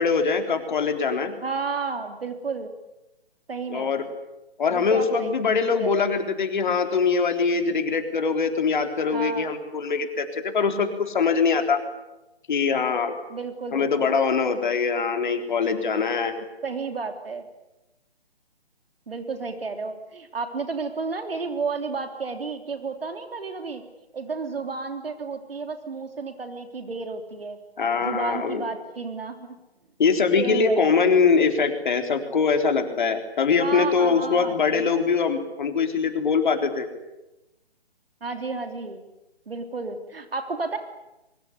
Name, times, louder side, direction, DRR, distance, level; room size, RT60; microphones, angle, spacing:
voice 1, 0.0-1.3 3.7-4.0 4.6-11.8 12.5-13.1 13.7-16.3 27.8-28.6 30.0-36.9, left 5 dB, 50° left, 6 dB, 3.8 m, -23 dB
voice 2, 1.4-2.7 3.5-3.9 4.7-5.3 5.8-6.1 9.1-9.5 13.3-14.2 16.6-17.4 19.1-23.8 24.1-27.6 28.0-29.6 30.4-30.9 33.6-35.0 38.2-39.0 39.5-40.8, right 4 dB, 65° right, 6 dB, 3.3 m, -32 dB
23.5 x 22.5 x 9.8 m, 0.97 s
figure-of-eight pair, 150°, 31 cm